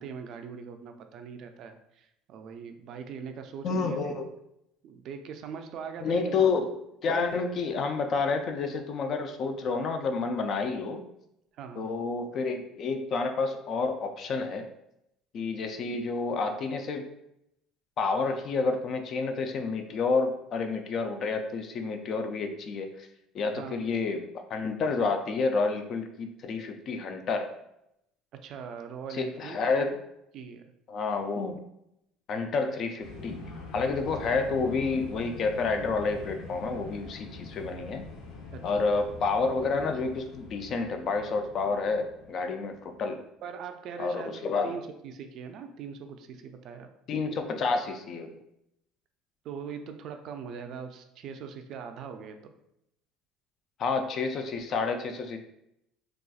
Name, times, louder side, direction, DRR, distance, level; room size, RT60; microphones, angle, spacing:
voice 1, 0.0-4.1 4.8-6.5 11.5-11.8 23.6-23.8 28.4-29.7 30.3-30.6 38.5-38.8 43.4-46.9 49.4-52.5, right 6 dB, 55° right, 6 dB, 0.3 m, -41 dB
voice 2, 3.6-4.3 6.0-6.7 7.0-11.0 11.8-14.7 15.3-17.1 18.0-23.1 23.3-27.5 29.1-30.0 30.9-31.6 32.3-33.4 33.7-38.1 38.6-43.2 44.0-44.7 47.1-48.3 53.8-55.4, left 4 dB, 45° left, 6 dB, 0.4 m, -29 dB
sound 1, 33.0-43.0, left 3 dB, 85° left, 0.7 m, -44 dB
3.9 x 2.3 x 2.3 m, 0.80 s
cardioid pair, 135°, 0 cm